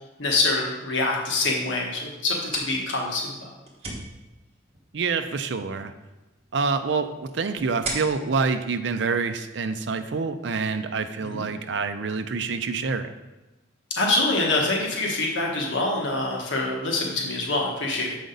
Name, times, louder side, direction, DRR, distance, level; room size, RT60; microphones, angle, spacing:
voice 1, 0.2-3.5 11.2-11.4 14.0-18.2, left 2 dB, 80° left, -1 dB, 1.3 m, -25 dB
sound 1, 2.2-9.7, right 2 dB, 35° right, 1.5 m, -40 dB
voice 2, 4.9-5.9 6.5-13.1, right 4 dB, 70° right, 9 dB, 0.5 m, -27 dB
6.7 x 5.1 x 3.9 m, 1.1 s
head